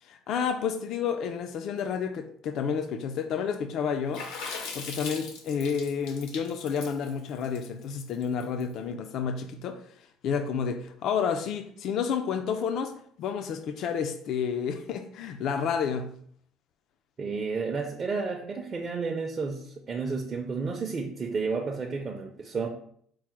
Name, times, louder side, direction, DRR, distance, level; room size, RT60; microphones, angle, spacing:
voice 1, 0.0-4.3 4.7-9.8 10.2-16.1, left 6 dB, 60° left, 0.3 m, -30 dB
Water / Splash splatter, 4.1-8.6, left 4 dB, 85° left, 0.7 m, -39 dB
voice 2, 17.2-22.7, right 4 dB, 30° right, 0.5 m, -31 dB
4.6 x 2.0 x 4.4 m
cardioid pair, 130°, 0 cm